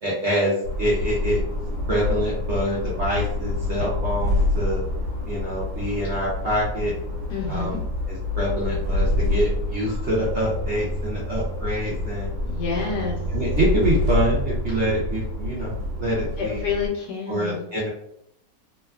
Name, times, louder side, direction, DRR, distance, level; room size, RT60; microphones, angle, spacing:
voice 1, 0.0-1.4 1.9-4.8 5.3-6.9 7.5-7.8 8.1-12.3 12.7-12.8 13.3-16.6 17.3-17.9, equal, 60° right, -6 dB, 0.7 m, -26 dB
sound 1, 0.6-16.9, left 1 dB, 90° right, 1.3 m, -27 dB
voice 2, 7.3-7.8 12.4-13.2 16.4-17.7, left 5 dB, 75° left, -1 dB, 1.1 m, -28 dB
2.9 x 2.3 x 2.3 m, 0.73 s
omnidirectional pair, 1.9 m